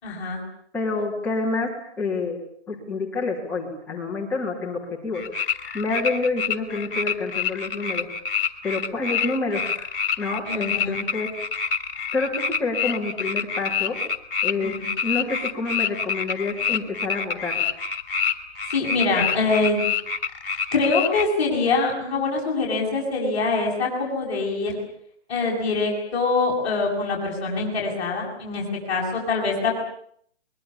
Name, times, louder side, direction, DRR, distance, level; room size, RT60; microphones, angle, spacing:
voice 1, 0.0-0.4 10.5-11.0 14.6-14.9 18.7-19.9 20.7-24.8 25.3-29.7, left 3 dB, 25° left, -5 dB, 7.3 m, -24 dB
voice 2, 0.7-1.7 2.0-2.4 2.7-8.1 8.6-9.9 10.2-11.3 12.1-14.0 14.4-14.7 15.0-17.5, left 3 dB, 5° left, -5 dB, 3.2 m, -28 dB
sound 1, 5.1-21.2, left 6 dB, 55° left, 2.8 m, -27 dB
24.0 x 22.5 x 8.7 m, 0.64 s
hypercardioid pair, 170°, 34 cm